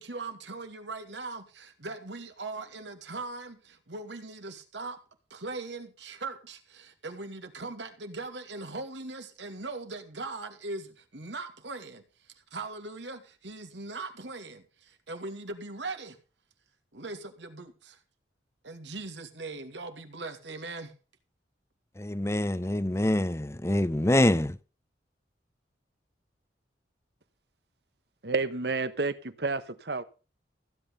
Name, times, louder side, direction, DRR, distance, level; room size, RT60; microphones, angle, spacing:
voice 1, 0.0-5.0 5.3-12.0 12.5-16.2 16.9-18.0 18.6-20.9, right 3 dB, 85° right, 2.6 m, -40 dB
voice 2, 22.0-24.6, left 1 dB, 15° left, 0.6 m, -25 dB
voice 3, 28.2-29.6 29.9-30.0, right 3 dB, 65° right, 1.2 m, -29 dB
15.5 x 8.8 x 5.5 m
head